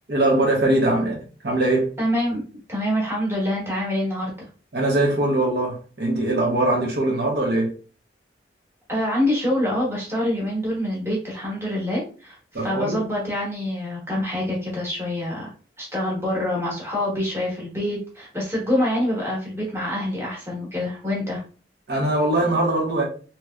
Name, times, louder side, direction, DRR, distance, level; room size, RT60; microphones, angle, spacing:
voice 1, 0.1-2.0 4.7-7.8 12.5-13.0 21.9-23.0, right 2 dB, 65° right, 0.9 m, -21 dB
voice 2, 2.0-2.4 2.7-4.5 8.9-12.4 12.6-15.5 15.8-21.4, left 1 dB, 15° right, 1.1 m, -25 dB
3.1 x 2.8 x 2.3 m
head